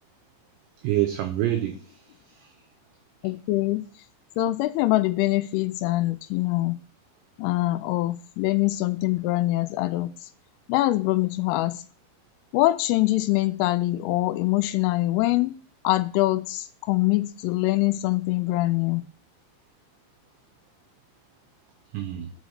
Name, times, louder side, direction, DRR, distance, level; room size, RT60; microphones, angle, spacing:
voice 1, 0.8-2.6 21.9-22.3, right 13 dB, 90° right, 2.4 m, -28 dB
voice 2, 3.2-3.8 4.4-6.8 7.4-10.1 10.7-11.8 12.5-15.5 15.8-19.0, left 17 dB, 85° left, 3.0 m, -24 dB
6.3 x 5.2 x 6.4 m
omnidirectional pair, 5.8 m